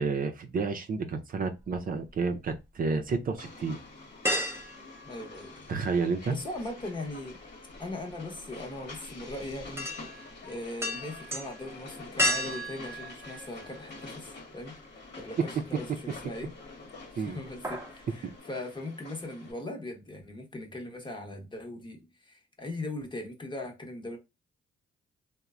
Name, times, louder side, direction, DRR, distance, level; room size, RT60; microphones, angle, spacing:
voice 1, 0.0-3.8 5.7-6.4 17.2-17.4, right 4 dB, 50° right, 0.6 m, -30 dB
sound 1, 1.6-2.6 3.1-3.2 4.2-6.0 6.2-14.2 14.6-14.7 16.1-16.7 17.0-17.2 17.4-18.0 18.3-18.4, left 1 dB, 15° right, 0.7 m, -35 dB
Train, 3.4-19.5, left 3 dB, 60° left, 1.0 m, -47 dB
voice 2, 5.0-5.7 6.3-7.4 7.8-9.9 10.4-14.7 15.2-16.5 17.1-24.2, left 2 dB, 25° left, 0.9 m, -39 dB
3.0 x 2.1 x 2.4 m
cardioid pair, 75°, 19 cm